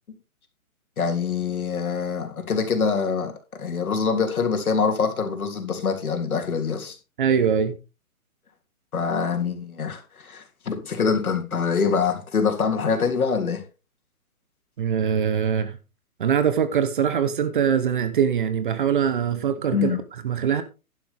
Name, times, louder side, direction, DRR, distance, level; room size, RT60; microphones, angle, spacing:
voice 1, 1.0-3.3 3.6-7.0 8.9-13.6 19.7-20.0, left 5 dB, 75° left, 3.3 m, -24 dB
voice 2, 7.2-7.8 14.8-15.7 16.2-20.0 20.2-20.6, right 8 dB, 35° right, 1.1 m, -22 dB
11.0 x 11.0 x 3.5 m
hypercardioid pair, 160°, 43 cm